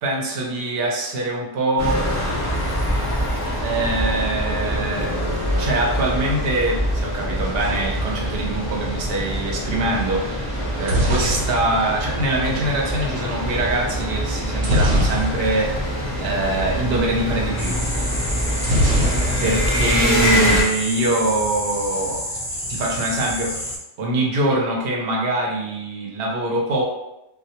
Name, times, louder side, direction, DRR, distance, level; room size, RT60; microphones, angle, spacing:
voice 1, 0.0-2.0 3.6-5.2 5.6-10.5 10.8-15.7 16.2-17.8 19.4-22.2 22.7-23.7 24.0-26.8, right 2 dB, 60° right, -1 dB, 0.7 m, -23 dB
sound 1, 1.8-20.6, equal, 15° right, 0.7 m, -24 dB
sound 2, 10.6-12.7 14.6-15.8 16.1-16.2 16.4-16.7 18.6-19.8 20.1-20.7, equal, 90° right, 1.0 m, -22 dB
sound 3, 17.6-23.8, left 1 dB, 35° left, 0.4 m, -30 dB
2.2 x 2.1 x 2.7 m, 0.91 s
omnidirectional pair, 1.2 m